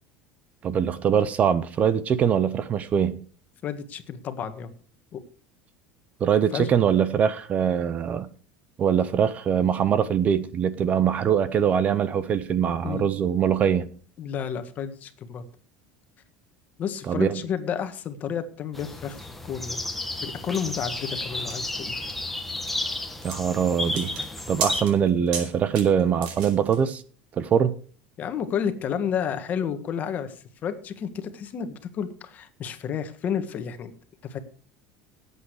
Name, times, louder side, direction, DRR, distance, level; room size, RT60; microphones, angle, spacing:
voice 1, 0.6-3.2 6.2-8.3 8.8-13.9 17.1-17.4 23.2-24.1 24.5-27.0 27.4-27.7, right 8 dB, 30° right, 0.7 m, -23 dB
voice 2, 3.6-4.7 5.1-5.2 6.5-6.7 12.8-13.0 14.2-15.4 16.8-19.8 20.2-22.1 28.2-33.9 34.2-34.4, left 8 dB, 35° left, 1.6 m, -31 dB
sound 1, 18.7-24.8, left 2 dB, 5° left, 1.4 m, -32 dB
sound 2, 20.5-26.8, right 6 dB, 90° right, 4.6 m, -36 dB
18.5 x 8.3 x 4.8 m
cardioid pair, 150°, 5 cm